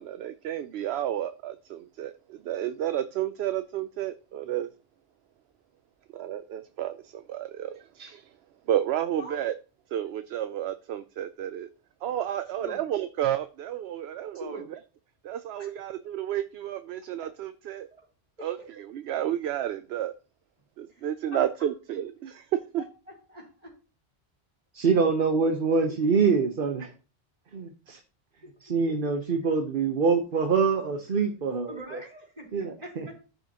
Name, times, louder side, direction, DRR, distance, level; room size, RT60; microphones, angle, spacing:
voice 1, 0.0-4.7 6.1-8.3 8.7-9.5 9.9-11.7 12.0-14.8 15.2-17.9 18.4-20.1 20.8-22.8, right 11 dB, 75° right, 0.8 m, -31 dB
voice 2, 14.3-14.7 15.6-15.7 17.9-18.0 18.4-18.5 20.9-21.1 21.3-21.5 23.3-23.7 28.4-28.5 31.7-33.3, equal, 35° right, 3.2 m, -43 dB
voice 3, 24.8-26.9 27.5-28.0 28.6-32.0 32.5-33.1, right 5 dB, 55° right, 1.1 m, -25 dB
13.5 x 5.5 x 2.9 m
omnidirectional pair, 1.1 m